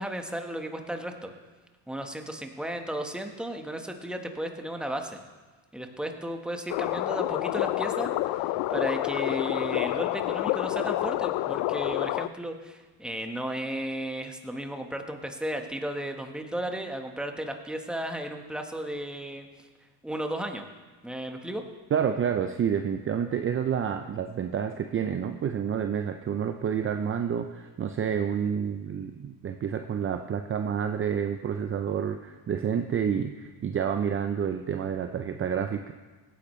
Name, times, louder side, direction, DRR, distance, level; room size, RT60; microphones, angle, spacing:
voice 1, 0.0-1.3 1.9-5.2 5.7-19.5 20.0-20.6 21.0-21.6, right 1 dB, ahead, 4 dB, 1.3 m, -34 dB
sound 1, 6.7-12.3, left 16 dB, 60° left, 0.5 m, -28 dB
voice 2, 21.9-35.9, right 8 dB, 30° right, 7 dB, 0.6 m, -29 dB
17.5 x 10.0 x 3.2 m, 1.3 s
supercardioid pair, 95°, 45 cm